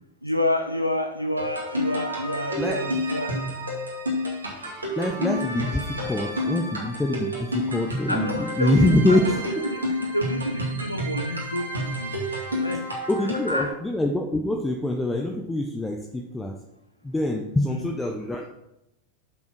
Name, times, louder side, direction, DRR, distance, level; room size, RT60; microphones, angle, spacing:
voice 1, 0.2-3.4 8.1-9.4 9.6-12.1 12.6-12.9 13.5-13.8 17.7-17.9, left 1 dB, 90° left, 5 dB, 0.6 m, -28 dB
sound 1, 1.4-13.7, equal, 80° right, 2.2 m, -30 dB
voice 2, 5.0-9.6 13.1-16.5 17.0-18.5, left 1 dB, 10° left, 2 dB, 0.7 m, -25 dB
6.6 x 5.7 x 6.1 m, 0.87 s
figure-of-eight pair, 90°, 0 cm